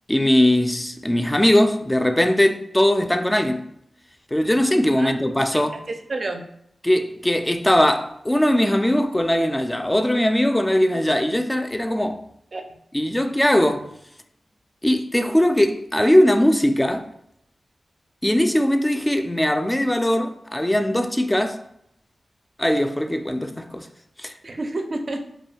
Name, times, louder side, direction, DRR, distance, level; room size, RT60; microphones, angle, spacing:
voice 1, 0.1-3.7 4.3-5.8 6.8-12.2 12.9-13.9 14.8-17.1 18.2-21.6 22.6-23.9 24.2-24.3, left 1 dB, 15° left, 0.3 m, -20 dB
voice 2, 5.9-6.5 12.5-12.8 24.4-25.2, right 2 dB, 55° right, 0.4 m, -29 dB
2.2 x 2.2 x 3.2 m
cardioid pair, 40°, 0 cm